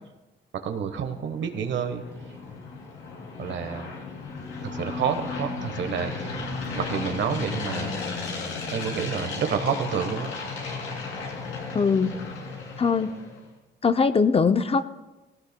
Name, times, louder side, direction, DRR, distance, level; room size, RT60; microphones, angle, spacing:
voice 1, 0.5-2.0 3.4-3.9 4.6-6.3 6.7-8.0 8.7-10.3, right 7 dB, 65° right, 8 dB, 1.2 m, -29 dB
sound 1, 1.1-13.4, left 4 dB, 80° left, 2.8 m, -34 dB
voice 2, 11.7-12.2 12.8-13.1 13.8-14.8, left 5 dB, 30° left, 11 dB, 0.5 m, -21 dB
17.0 x 17.0 x 2.2 m, 1.1 s
cardioid pair, 90°, 20 cm